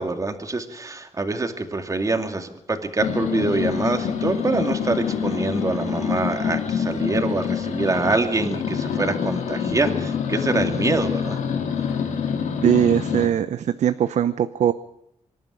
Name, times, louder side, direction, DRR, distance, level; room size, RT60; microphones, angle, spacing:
voice 1, 0.0-11.4, right 3 dB, 25° right, 5 dB, 2.4 m, -25 dB
sound 1, 3.0-13.3, left 7 dB, 90° left, 2.7 m, -26 dB
voice 2, 12.6-14.7, right 10 dB, 75° right, 12 dB, 0.8 m, -20 dB
25.5 x 11.0 x 9.9 m, 0.78 s
cardioid pair, 100°, 12 cm